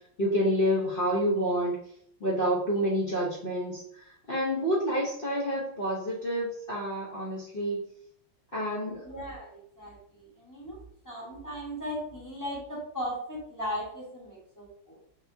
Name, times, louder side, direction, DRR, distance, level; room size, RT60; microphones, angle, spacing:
voice 1, 0.2-1.8 2.2-7.8 8.5-9.1, equal, 45° left, -5 dB, 0.7 m, -28 dB
voice 2, 9.0-10.8 11.0-15.0, equal, 15° left, -5 dB, 0.9 m, -37 dB
4.2 x 3.4 x 2.6 m, 0.66 s
omnidirectional pair, 2.1 m